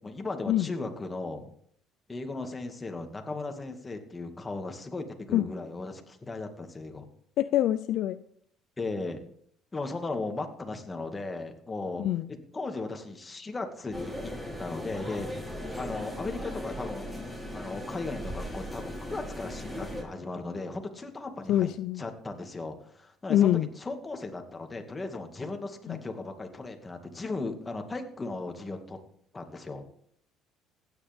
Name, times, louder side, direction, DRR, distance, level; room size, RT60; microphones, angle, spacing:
voice 1, 0.0-1.5 2.1-7.1 8.8-9.2 9.7-12.0 12.5-14.3 14.6-17.2 17.5-21.7 22.0-29.0 29.3-29.8, left 3 dB, 25° left, 4 dB, 2.1 m, -37 dB
voice 2, 7.4-8.2 12.0-12.3 21.5-22.0 23.3-23.7 25.9-26.0, left 12 dB, 70° left, 12 dB, 0.5 m, -25 dB
sound 1, 13.9-20.0, left 1 dB, 5° right, 4.5 m, -38 dB
16.0 x 9.8 x 3.6 m, 0.64 s
supercardioid pair, 80°, 0 cm